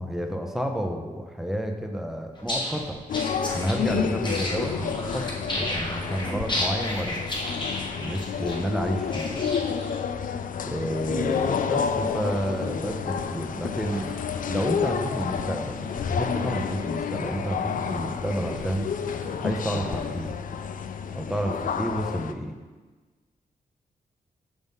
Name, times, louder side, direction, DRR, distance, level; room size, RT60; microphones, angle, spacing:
voice 1, 0.0-3.0 3.5-5.3 5.6-7.3 8.0-9.5 10.7-14.1 14.5-15.8 16.1-18.9 19.4-20.4 21.1-22.6, equal, ahead, 3 dB, 0.8 m, -30 dB
sound 1, 2.4-10.0, left 1 dB, 30° left, 1.4 m, -32 dB
sound 2, 3.1-22.3, left 7 dB, 65° left, 0.4 m, -30 dB
sound 3, 10.9-20.4, left 1 dB, 85° left, 1.4 m, -42 dB
6.0 x 5.5 x 3.6 m, 1.3 s
cardioid pair, 60°, 15 cm